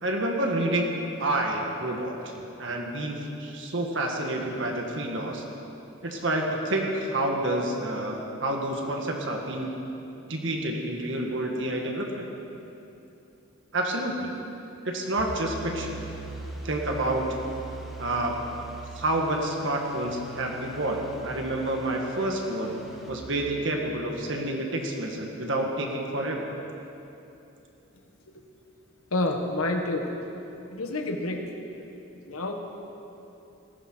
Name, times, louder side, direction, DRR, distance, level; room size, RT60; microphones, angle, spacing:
voice 1, 0.0-2.2 2.6-5.4 6.0-9.7 10.3-12.3 13.7-14.3 14.8-16.0 16.6-17.2 18.0-18.3 18.9-26.4, right 1 dB, 60° right, 1 dB, 1.7 m, -29 dB
sound 1, 15.2-23.1, right 2 dB, ahead, 1.7 m, -41 dB
voice 2, 29.1-30.1 30.7-31.5 32.3-32.5, left 2 dB, 90° left, 3 dB, 1.7 m, -28 dB
19.0 x 15.5 x 4.6 m, 2.9 s
head